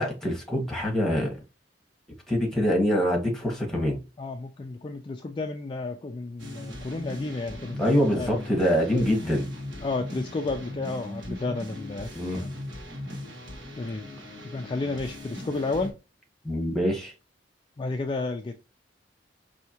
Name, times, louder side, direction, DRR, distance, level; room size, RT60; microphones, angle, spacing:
voice 1, 0.0-1.3 2.3-4.0 7.8-9.5 12.1-12.4 16.4-17.1, equal, ahead, 1.4 m, -25 dB
voice 2, 4.2-8.7 9.8-12.1 12.4-12.6 13.8-14.0 14.4-15.9 17.8-18.5, left 3 dB, 25° left, 0.4 m, -32 dB
sound 1, 6.4-15.9, left 1 dB, 70° right, 1.4 m, -39 dB
4.5 x 2.7 x 2.8 m
head